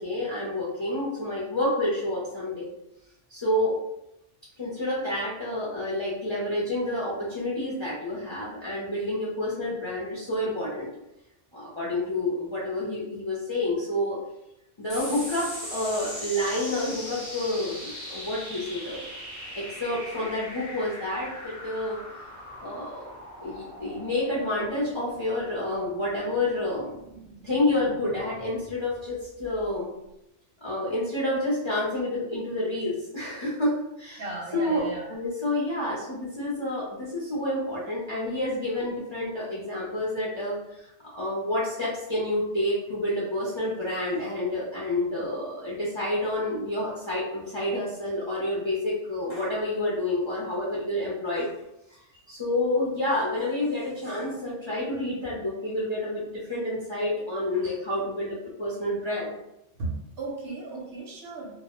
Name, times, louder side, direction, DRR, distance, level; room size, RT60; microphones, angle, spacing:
voice 1, 0.0-2.7 3.3-3.7 4.6-10.9 11.5-14.2 14.8-19.0 19.5-22.0 22.6-23.1 23.4-26.9 27.4-29.9 30.6-40.9 41.2-51.5 52.3-59.3, left 1 dB, 40° left, -7 dB, 0.4 m, -29 dB
sound 1, 14.9-29.7, equal, 20° left, 0.7 m, -41 dB
voice 2, 34.2-35.1 59.8-61.5, right 3 dB, 65° right, -2 dB, 0.8 m, -35 dB
2.2 x 2.0 x 2.9 m, 0.86 s
omnidirectional pair, 1.2 m